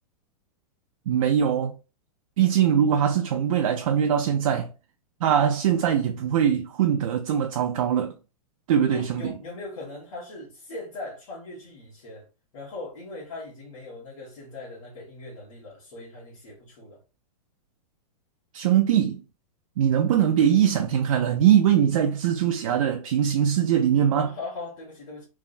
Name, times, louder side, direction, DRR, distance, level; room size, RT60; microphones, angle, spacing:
voice 1, 1.1-1.7 2.4-4.7 5.2-8.2 8.7-9.3 18.5-19.2 19.8-24.3, right 9 dB, 60° right, 0.4 m, -22 dB
voice 2, 8.8-12.3 12.5-17.0 24.1-25.3, left 2 dB, 60° left, 1.3 m, -39 dB
3.2 x 2.0 x 2.5 m
supercardioid pair, 165°, 19 cm